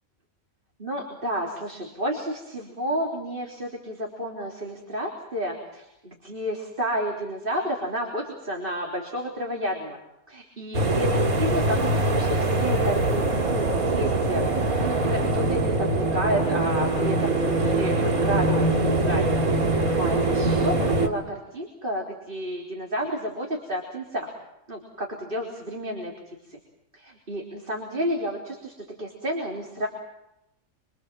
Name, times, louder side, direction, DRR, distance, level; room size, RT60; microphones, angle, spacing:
voice 1, 0.8-10.0 10.3-19.3 19.9-24.3 24.7-26.6 26.9-29.9, equal, 35° right, -1 dB, 3.8 m, -31 dB
sound 1, 10.7-21.1, right 2 dB, 90° right, 3.0 m, -23 dB
26.5 x 25.5 x 7.5 m, 0.89 s
omnidirectional pair, 1.5 m